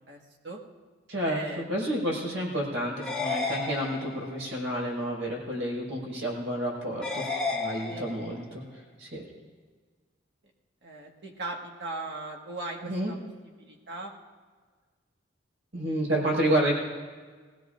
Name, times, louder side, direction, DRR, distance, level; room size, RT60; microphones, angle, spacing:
voice 1, 0.1-0.6 1.2-1.8 7.9-8.1 10.8-13.2 13.4-14.1, right 2 dB, 60° right, 0 dB, 1.7 m, -38 dB
voice 2, 1.1-1.4 1.7-8.6 9.0-9.3 12.8-13.1 15.7-16.7, right 1 dB, 90° right, -3 dB, 5.4 m, -30 dB
sound 1, 3.0-4.4 7.0-8.4, left 3 dB, 5° left, 1.4 m, -32 dB
20.5 x 17.0 x 2.6 m, 1.5 s
head